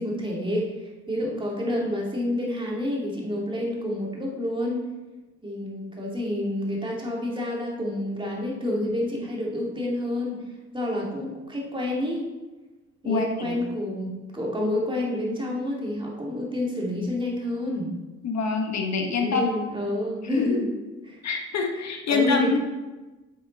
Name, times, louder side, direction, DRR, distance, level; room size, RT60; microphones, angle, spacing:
voice 1, 0.0-4.8 5.4-10.4 10.7-12.2 13.0-17.9 19.2-20.6 21.1-21.2 22.1-22.6, left 1 dB, 15° right, -3 dB, 2.5 m, -29 dB
voice 2, 13.0-13.6 18.2-19.5 20.3-20.7 21.2-22.6, left 4 dB, 60° left, 3 dB, 1.3 m, -25 dB
8.0 x 7.9 x 4.1 m, 1.2 s
cardioid pair, 90°, 30 cm